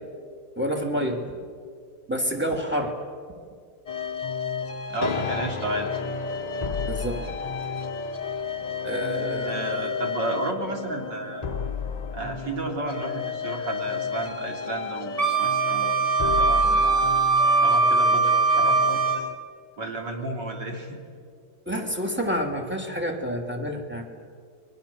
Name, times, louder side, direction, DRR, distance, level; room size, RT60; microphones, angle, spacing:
voice 1, 0.6-1.2 2.1-2.9 6.9-7.2 8.8-9.9 21.7-24.2, equal, 5° right, 3 dB, 2.8 m, -28 dB
sound 1, 3.9-19.3, left 6 dB, 35° left, 0.6 m, -31 dB
voice 2, 4.9-5.9 9.2-11.5 12.1-17.1 17.6-19.3 19.8-21.0, right 2 dB, 65° right, 2 dB, 3.9 m, -32 dB
Wind instrument woodwind instrument, 15.2-19.2, right 4 dB, 25° right, 2.4 m, -21 dB
29.5 x 22.0 x 7.2 m, 2.2 s
omnidirectional pair, 2.0 m